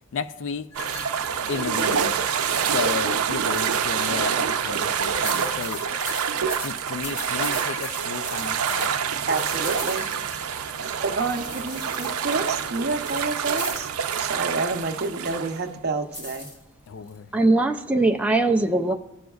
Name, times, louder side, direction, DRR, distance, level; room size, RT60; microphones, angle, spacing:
voice 1, 0.1-0.7 1.5-2.1 2.7-5.8 6.6-9.0 11.9-12.1 16.9-17.3, left 5 dB, 60° left, 0.4 m, -33 dB
sound 1, 0.7-3.4 3.9-5.2 5.8-6.5 7.5-8.7 9.3-11.4, left 3 dB, 15° left, 0.9 m, -43 dB
sound 2, 0.7-15.6, right 7 dB, 85° right, 0.5 m, -27 dB
sound 3, 4.7-5.0 5.2-10.4 11.2-13.9 16.1-17.2, left 1 dB, 30° left, 2.1 m, -39 dB
voice 2, 9.3-10.0 11.0-13.9 14.2-16.5, right 3 dB, 50° right, 0.7 m, -28 dB
voice 3, 17.3-18.9, right 2 dB, 5° right, 0.3 m, -20 dB
15.0 x 6.3 x 2.3 m
head